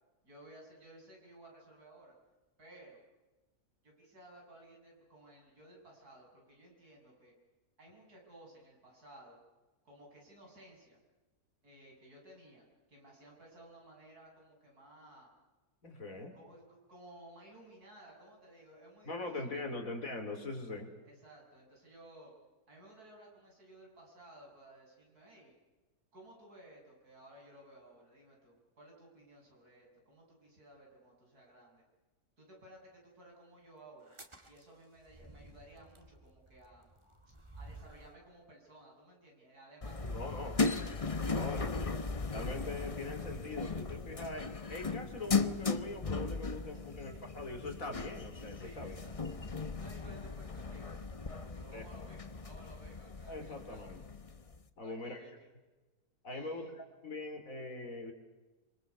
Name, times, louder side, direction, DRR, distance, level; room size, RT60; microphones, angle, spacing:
voice 1, 0.2-2.2 2.6-3.0 3.8-7.3 7.8-9.4 9.8-11.0 11.6-15.3 16.0-19.8 21.0-22.3 22.7-25.5 26.1-31.8 32.4-34.1 34.4-36.9 37.5-40.4 41.0-41.6 46.7-47.3 48.5-49.4 49.7-53.9 54.8-55.5 56.3-56.7, right 1 dB, 85° right, -2 dB, 8.0 m, -57 dB
voice 2, 15.8-16.3 19.1-20.9 40.1-40.6 41.3-41.7 42.3-48.9 51.7-51.9 53.3-54.0 54.8-55.2 56.2-58.1, left 2 dB, 60° left, 5 dB, 3.5 m, -42 dB
sound 1, 34.0-38.2, right 2 dB, 20° right, 1.9 m, -54 dB
sound 2, 39.8-54.6, left 4 dB, 25° left, 0.9 m, -37 dB
26.0 x 25.0 x 6.8 m, 1.2 s
omnidirectional pair, 1.6 m